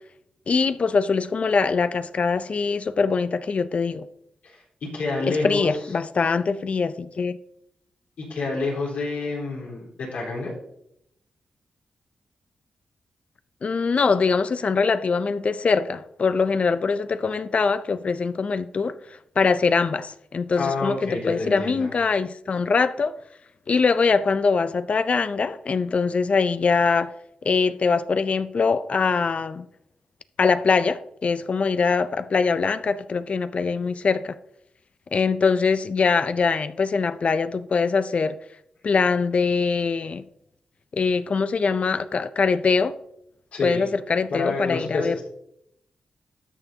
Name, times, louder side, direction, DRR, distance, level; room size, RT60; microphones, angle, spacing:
voice 1, 0.5-4.1 5.3-7.4 13.6-19.0 19.4-23.2 23.7-27.1 27.4-29.7 30.4-34.3 35.1-38.4 38.8-40.2 40.9-43.0 43.6-45.2, left 5 dB, 55° left, 0.5 m, -23 dB
voice 2, 4.4-5.7 8.2-10.5 20.6-21.9 43.5-43.9 44.3-45.2, left 3 dB, 85° left, 3.8 m, -28 dB
13.0 x 6.8 x 2.8 m
cardioid pair, 55°, 3 cm